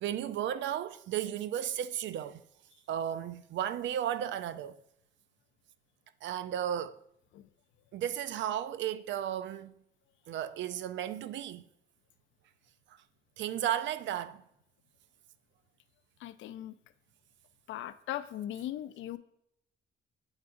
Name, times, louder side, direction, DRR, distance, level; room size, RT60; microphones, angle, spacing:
voice 1, 0.0-2.4 2.9-4.7 6.2-7.0 7.9-9.7 10.3-11.6 13.4-14.4, right 10 dB, 70° right, 0.4 m, -34 dB
voice 2, 16.2-16.7 17.7-19.2, left 12 dB, 75° left, 0.4 m, -39 dB
8.0 x 4.7 x 2.5 m
cardioid pair, 90°, 20 cm